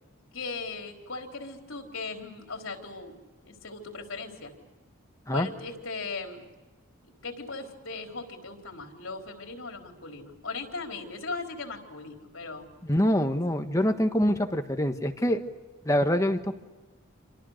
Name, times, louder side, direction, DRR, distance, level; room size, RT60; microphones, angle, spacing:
voice 1, 0.3-4.5 5.3-6.5 7.2-12.7, left 3 dB, 75° left, 3 dB, 4.2 m, -38 dB
voice 2, 12.9-15.4 15.8-16.5, equal, 15° left, 6 dB, 1.5 m, -25 dB
28.5 x 26.0 x 6.6 m, 1.2 s
head